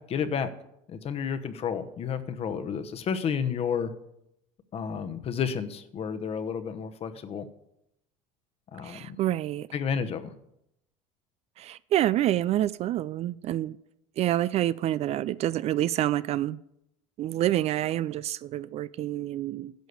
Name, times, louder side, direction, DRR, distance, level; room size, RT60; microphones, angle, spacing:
voice 1, 0.1-0.5 0.9-3.9 4.7-7.5 8.7-9.2 9.7-10.3, left 7 dB, 40° left, 1.0 m, -31 dB
voice 2, 8.8-9.7 11.6-13.8 14.2-16.6 17.2-19.7, right 13 dB, 45° right, 0.4 m, -27 dB
10.5 x 6.4 x 8.1 m
supercardioid pair, 105°, 15 cm